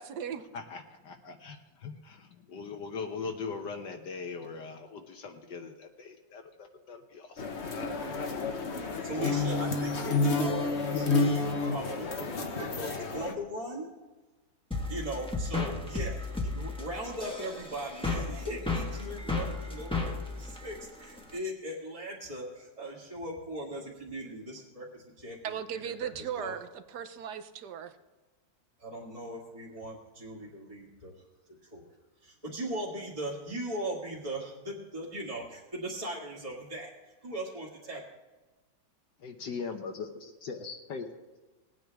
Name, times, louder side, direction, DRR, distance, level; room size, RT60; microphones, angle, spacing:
voice 1, 0.0-0.5 25.4-27.9, right 8 dB, 65° right, 10 dB, 1.2 m, -37 dB
voice 2, 0.5-7.4 39.2-41.1, left 5 dB, 65° left, 5 dB, 1.5 m, -40 dB
sound 1, 7.4-13.3, left 3 dB, 40° left, 1.1 m, -30 dB
voice 3, 9.0-13.9 14.9-26.1 26.4-26.5 28.8-31.1 31.7-31.9 32.2-36.9 37.2-38.0, right 1 dB, 20° right, -6 dB, 2.0 m, -39 dB
sound 2, 14.7-21.4, left 3 dB, 5° left, 1.1 m, -34 dB
20.0 x 9.0 x 3.5 m, 1.2 s
omnidirectional pair, 2.1 m